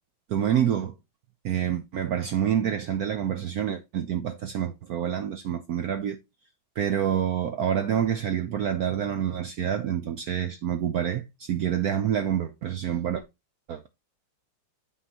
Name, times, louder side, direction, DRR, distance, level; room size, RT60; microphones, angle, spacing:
voice 1, 0.3-0.9 1.4-6.2 6.8-13.2 13.7-13.8, right 9 dB, 80° right, 0.8 m, -27 dB
8.5 x 5.6 x 2.8 m
omnidirectional pair, 2.2 m